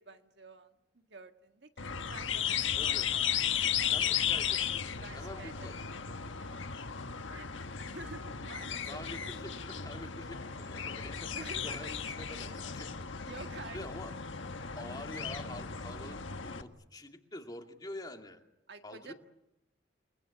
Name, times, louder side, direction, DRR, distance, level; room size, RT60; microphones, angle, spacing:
voice 1, 0.0-3.9 5.0-5.7 6.4-6.6 7.3-7.5 7.9-9.0 11.3-11.9 13.2-13.8 18.7-19.1, right 3 dB, 60° right, 6 dB, 1.7 m, -49 dB
sound 1, 1.8-16.6, left 8 dB, 80° left, 1.4 m, -35 dB
voice 2, 2.7-3.1 3.9-5.8 8.9-13.1 13.7-14.1 14.8-18.4 18.8-19.1, left 1 dB, 20° left, 4 dB, 2.3 m, -46 dB
29.5 x 20.0 x 9.8 m, 0.90 s
head